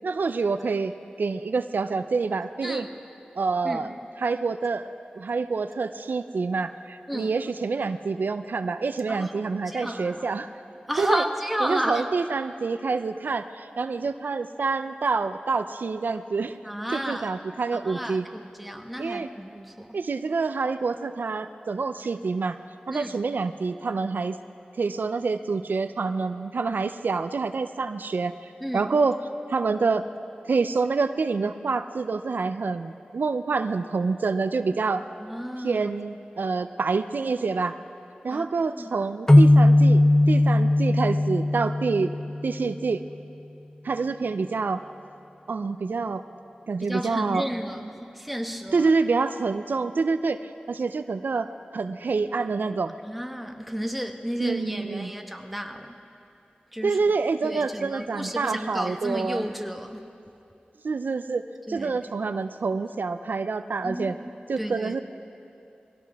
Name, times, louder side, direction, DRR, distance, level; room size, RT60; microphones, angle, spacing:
voice 1, 0.0-0.9 1.2-2.9 3.4-4.9 5.2-10.5 11.0-11.2 11.6-16.6 16.9-18.3 19.0-19.3 19.9-22.6 22.9-24.4 24.8-29.2 29.5-30.1 30.5-35.1 35.6-37.8 38.2-42.1 42.4-43.0 43.8-44.8 45.5-46.2 46.7-47.4 48.7-53.0 54.4-55.1 56.8-59.5 60.8-64.2 64.5-65.0, right 4 dB, 75° right, 10 dB, 0.4 m, -27 dB
voice 2, 9.7-10.3 10.9-12.1 16.6-17.3 17.8-20.0 22.9-23.2 28.6-28.9 35.2-35.9 38.3-39.0 46.9-48.9 53.0-56.0 56.7-57.0 57.4-60.1 61.7-62.0 63.8-64.2 64.6-64.9, equal, ahead, 4 dB, 1.1 m, -32 dB
sound 1, 39.3-42.8, left 1 dB, 15° left, 0.3 m, -18 dB
22.0 x 17.0 x 3.5 m, 2.6 s
wide cardioid pair, 65°, 3 cm